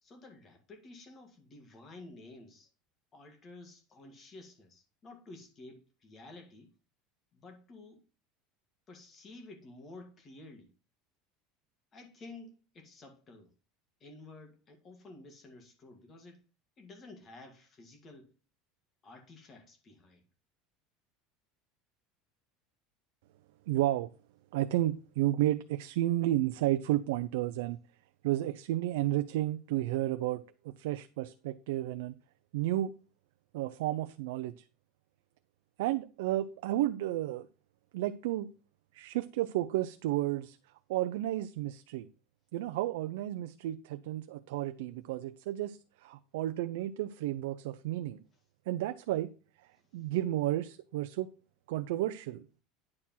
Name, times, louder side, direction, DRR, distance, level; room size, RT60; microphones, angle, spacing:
voice 1, 0.0-2.7 3.1-6.7 7.3-8.1 8.9-10.7 11.9-13.5 14.0-16.4 16.8-18.3 19.0-20.2, left 2 dB, 25° left, 1.9 m, -52 dB
voice 2, 23.7-24.1 24.5-27.8 28.2-32.1 32.5-32.9 33.5-34.5 35.8-37.5 37.9-38.5 38.9-40.6 40.9-42.1 42.5-48.2 48.7-49.3 49.9-51.3 51.7-52.6, right 14 dB, 90° right, 0.5 m, -32 dB
9.7 x 4.5 x 5.7 m
cardioid pair, 165°, 0 cm